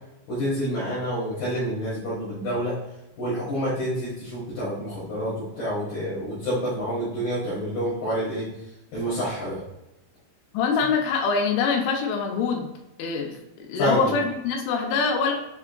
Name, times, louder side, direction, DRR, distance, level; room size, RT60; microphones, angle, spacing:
voice 1, 0.3-2.7 3.2-8.5 8.9-9.6 13.8-14.1, equal, 65° left, -10 dB, 3.0 m, -28 dB
voice 2, 10.5-12.7 13.0-15.3, left 5 dB, 85° left, 2 dB, 3.1 m, -24 dB
6.9 x 3.4 x 2.2 m, 0.91 s
omnidirectional pair, 5.3 m